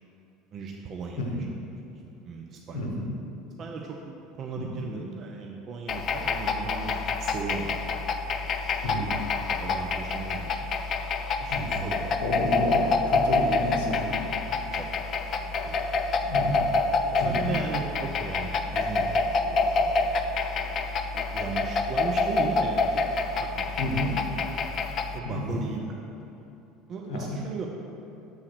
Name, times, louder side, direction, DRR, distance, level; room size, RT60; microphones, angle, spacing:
voice 1, 0.5-1.4 1.9-2.9 3.6-8.1 9.0-10.6 11.4-12.2 14.7-15.0 15.3-15.4 15.6-15.8 17.0-20.1 20.5-24.0 25.1-25.9 26.9-27.7, right 4 dB, 40° right, 0 dB, 0.5 m, -37 dB
voice 2, 2.7-3.1 4.6-4.8 8.8-9.2 11.5-11.9 12.2-14.3 16.3-16.7 17.2-17.6 23.8-24.2 25.2-25.7 27.1-27.4, left 1 dB, 60° left, 1 dB, 0.9 m, -30 dB
sound 1, 5.9-25.2, left 3 dB, 40° left, 0.4 m, -27 dB
6.5 x 3.6 x 6.0 m, 2.9 s
figure-of-eight pair, 70°, 0 cm